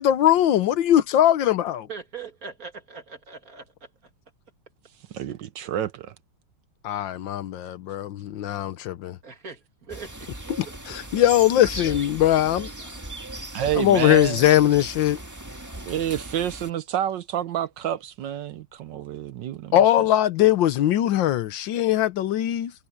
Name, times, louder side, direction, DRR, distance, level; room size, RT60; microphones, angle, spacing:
voice 1, 0.0-1.9 6.8-9.2 10.6-12.7 13.7-15.2 19.7-22.7, left 12 dB, 80° left, 1.5 m, -21 dB
voice 2, 1.9-3.9 9.2-10.3, right 5 dB, 45° right, 2.8 m, -40 dB
voice 3, 5.1-6.1 13.5-14.4 15.9-19.8, right 10 dB, 75° right, 1.4 m, -29 dB
sound 1, 9.9-16.7, right 1 dB, 10° right, 1.5 m, -37 dB
omnidirectional pair, 2.1 m